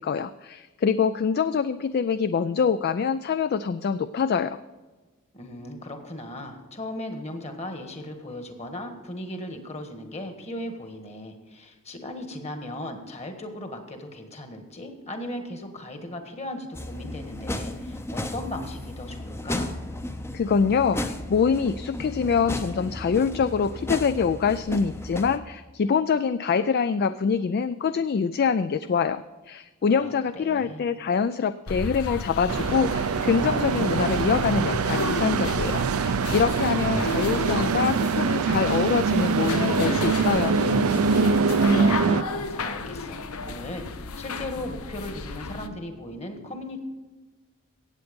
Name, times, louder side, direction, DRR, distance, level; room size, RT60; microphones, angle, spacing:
voice 1, 0.0-4.6 20.3-40.6, left 6 dB, 45° left, 13 dB, 0.3 m, -25 dB
voice 2, 5.3-19.8 29.9-30.9 41.3-46.8, left 1 dB, 30° left, 6 dB, 1.5 m, -37 dB
sound 1, 16.7-25.4, left 1 dB, 10° left, 0.6 m, -34 dB
sound 2, 31.7-45.7, left 3 dB, 85° left, 0.8 m, -33 dB
sound 3, 32.5-42.2, right 5 dB, 80° right, 0.5 m, -24 dB
16.5 x 7.9 x 5.2 m, 1.3 s
head